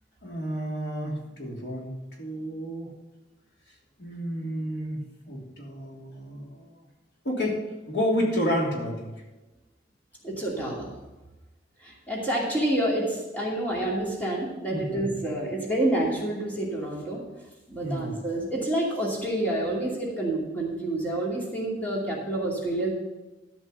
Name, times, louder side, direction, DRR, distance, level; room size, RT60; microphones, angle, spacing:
voice 1, 0.2-2.9 4.0-6.8 7.2-7.6 7.9-9.1 14.7-15.0 17.8-18.1, equal, 85° left, -2 dB, 3.0 m, -30 dB
voice 2, 10.2-10.9 11.8-17.2 17.7-22.9, right 1 dB, 10° left, -5 dB, 2.6 m, -28 dB
13.0 x 5.4 x 6.8 m, 1.1 s
head